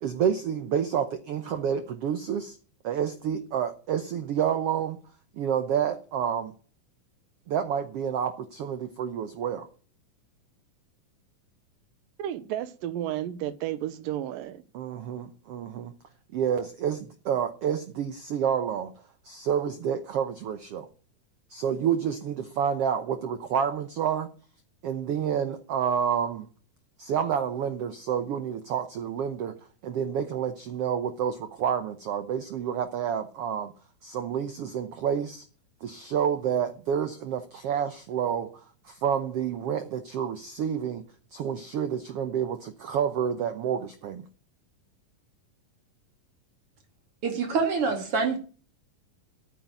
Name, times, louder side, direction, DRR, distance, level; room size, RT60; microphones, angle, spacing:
voice 1, 0.0-2.6 2.8-5.0 5.4-6.5 7.5-9.7 14.7-15.9 16.3-18.9 19.2-20.9 21.5-24.3 24.8-26.5 27.0-29.6 29.8-33.7 34.0-35.4 35.8-38.5 38.8-41.0 41.3-44.2, right 8 dB, 70° right, 9 dB, 1.4 m, -29 dB
voice 2, 12.2-14.6, right 12 dB, 85° right, 13 dB, 2.7 m, -32 dB
voice 3, 47.2-48.4, right 4 dB, 45° right, 4 dB, 2.9 m, -26 dB
10.0 x 9.3 x 9.3 m, 0.40 s
omnidirectional pair, 3.9 m